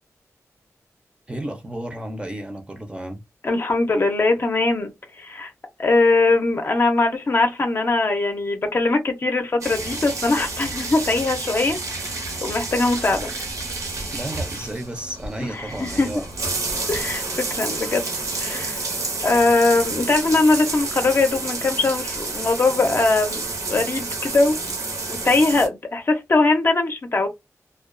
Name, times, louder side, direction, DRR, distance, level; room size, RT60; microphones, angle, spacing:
voice 1, 1.3-3.2 14.1-16.2, right 1 dB, 20° right, 0.5 m, -32 dB
voice 2, 3.4-5.5 5.8-11.8 12.4-13.3 15.6-16.1 16.9-18.1 18.4-18.8 19.2-23.4 23.7-24.8 25.2-27.3, left 3 dB, 45° left, 0.5 m, -21 dB
sound 1, 9.6-25.7, right 3 dB, 75° right, 0.8 m, -29 dB
2.2 x 2.2 x 2.4 m
wide cardioid pair, 120°, 6 cm